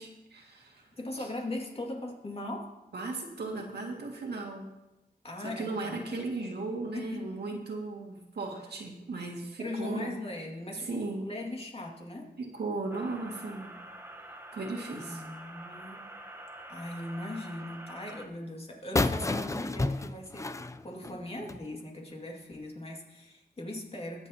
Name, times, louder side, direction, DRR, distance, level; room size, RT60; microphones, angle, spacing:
voice 1, 0.0-0.9 1.2-1.3 2.9-4.7 5.4-10.1 10.8-11.3 12.4-13.7 14.5-15.2, right 3 dB, 80° right, 0 dB, 2.0 m, -36 dB
voice 2, 1.0-2.7 5.2-6.3 6.9-7.2 7.5-7.6 9.6-10.9 11.2-12.3 14.9-16.0 16.7-20.5 20.8-24.3, left 1 dB, 35° left, 0 dB, 2.2 m, -39 dB
sound 1, 12.9-18.3, right 1 dB, 15° right, 1.0 m, -46 dB
sound 2, 19.0-21.7, left 2 dB, 20° left, 0.4 m, -31 dB
22.0 x 8.2 x 2.9 m, 0.98 s
wide cardioid pair, 110°, 17 cm